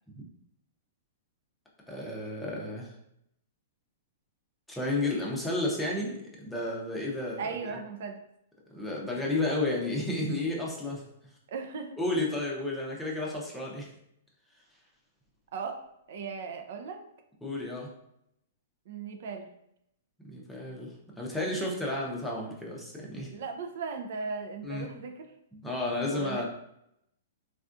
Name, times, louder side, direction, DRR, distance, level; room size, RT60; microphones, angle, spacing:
voice 1, 1.9-2.9 4.7-7.8 8.7-11.0 12.0-13.9 17.4-17.9 20.2-23.3 24.6-24.9 25.5-26.4, left 2 dB, 5° left, -4 dB, 0.6 m, -32 dB
voice 2, 7.4-8.2 11.5-12.0 15.5-17.1 18.9-19.5 23.2-25.3 26.0-26.4, right 5 dB, 60° right, 5 dB, 0.3 m, -37 dB
3.5 x 2.3 x 2.5 m, 0.77 s
hypercardioid pair, 150°, 0 cm